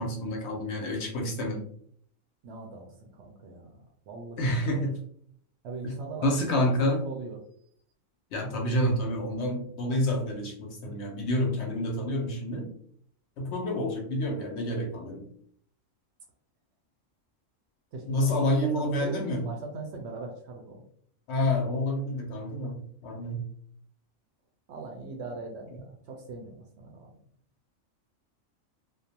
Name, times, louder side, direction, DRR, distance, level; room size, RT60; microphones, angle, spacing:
voice 1, 0.0-1.6 4.4-5.0 5.8-5.9 6.2-7.0 8.3-12.7 13.4-15.3 18.1-19.5 21.3-23.5, left 1 dB, 65° left, 1 dB, 0.8 m, -28 dB
voice 2, 2.4-4.7 5.6-6.6 7.0-7.4 17.9-20.8 24.7-27.1, right 3 dB, 65° right, 2 dB, 0.7 m, -40 dB
2.4 x 2.1 x 2.7 m, 0.63 s
omnidirectional pair, 1.4 m